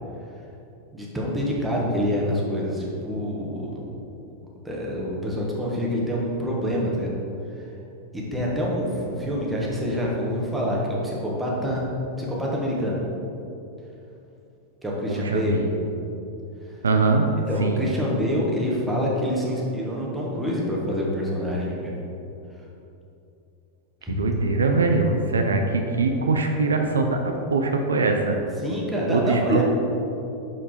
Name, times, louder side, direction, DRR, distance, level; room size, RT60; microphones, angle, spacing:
voice 1, 0.9-3.8 4.6-7.1 7.5-7.6 8.1-11.9 12.2-13.0 14.8-15.6 17.5-22.0 24.0-24.2 28.6-29.6, equal, 5° right, -4 dB, 1.5 m, -26 dB
voice 2, 15.1-15.7 16.8-17.3 17.6-17.8 24.1-28.4 29.1-29.6, right 3 dB, 70° right, 4 dB, 0.5 m, -22 dB
7.0 x 4.4 x 5.0 m, 2.8 s
figure-of-eight pair, 90°, 0 cm